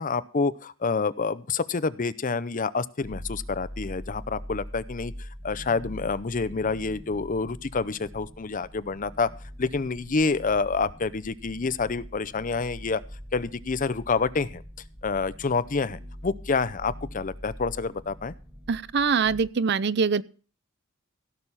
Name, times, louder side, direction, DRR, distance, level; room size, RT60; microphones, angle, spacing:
voice 1, 0.0-9.3 9.6-13.0 13.3-14.6 15.0-18.3, left 4 dB, 40° left, 0.6 m, -28 dB
sound 1, 3.0-19.4, equal, 5° right, 1.8 m, -43 dB
voice 2, 18.7-20.2, right 5 dB, 55° right, 0.6 m, -24 dB
16.5 x 6.8 x 5.6 m
head